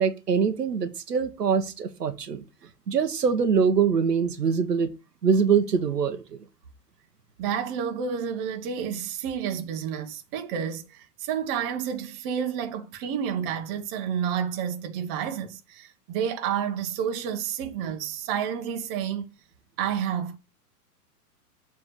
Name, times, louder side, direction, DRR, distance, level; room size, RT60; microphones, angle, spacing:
voice 1, 0.0-2.4 2.9-4.9 5.2-6.2, right 6 dB, 80° right, 1.1 m, -23 dB
voice 2, 7.4-19.3 19.8-20.4, right 8 dB, 35° right, 1.3 m, -30 dB
7.6 x 3.5 x 6.5 m
figure-of-eight pair, 110°, 48 cm